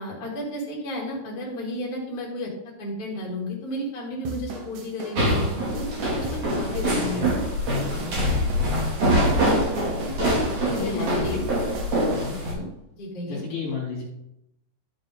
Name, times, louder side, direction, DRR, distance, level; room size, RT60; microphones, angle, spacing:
voice 1, 0.0-2.5 2.8-7.3 7.9-8.2 10.0-10.4 10.7-11.4 12.4-12.6 12.9-13.4, left 1 dB, 25° left, -4 dB, 3.2 m, -33 dB
sound 1, 4.2-12.4, right 3 dB, 90° right, 3.3 m, -37 dB
sound 2, 5.2-12.5, equal, 45° right, 3.8 m, -24 dB
voice 2, 6.7-7.3 10.0-11.6 12.1-12.4 13.3-14.0, left 4 dB, 55° left, -3 dB, 4.0 m, -32 dB
12.0 x 8.5 x 3.9 m, 0.84 s
omnidirectional pair, 4.6 m